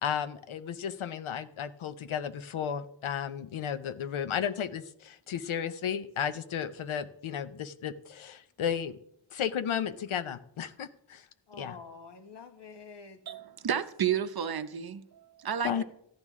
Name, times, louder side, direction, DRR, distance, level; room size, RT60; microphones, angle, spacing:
voice 1, 0.0-9.0 9.3-11.2 11.6-11.7 15.6-15.8, left 8 dB, 90° left, 0.7 m, -33 dB
voice 2, 11.5-13.2 14.1-14.2 15.6-15.8, left 4 dB, 60° left, 1.2 m, -47 dB
voice 3, 13.3-15.8, right 8 dB, 50° right, 0.7 m, -32 dB
14.0 x 11.0 x 3.6 m
wide cardioid pair, 165°, 47 cm